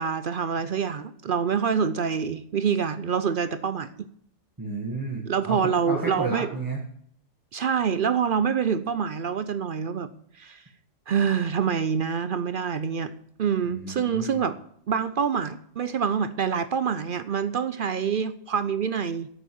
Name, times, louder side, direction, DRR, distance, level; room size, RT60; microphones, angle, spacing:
voice 1, 0.0-4.1 5.3-6.5 7.5-10.1 10.4-10.6 11.1-13.1 13.4-14.6 14.9-19.3, right 7 dB, 55° right, 13 dB, 0.6 m, -26 dB
voice 2, 4.6-6.8 13.6-14.4, right 3 dB, 15° right, -1 dB, 1.6 m, -32 dB
9.1 x 8.3 x 7.7 m, 0.67 s
omnidirectional pair, 1.3 m